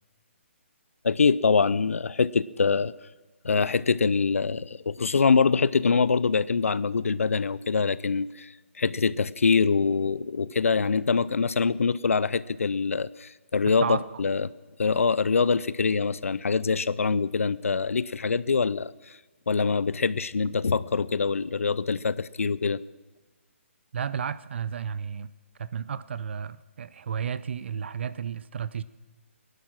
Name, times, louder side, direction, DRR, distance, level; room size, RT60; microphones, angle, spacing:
voice 1, 1.0-2.9 3.4-14.5 14.8-19.2 19.5-22.8, left 5 dB, 85° left, 0.5 m, -24 dB
voice 2, 13.7-14.1 23.9-25.3 25.6-28.8, right 7 dB, 55° right, 0.5 m, -32 dB
18.0 x 11.5 x 6.0 m
hypercardioid pair, 155°, 7 cm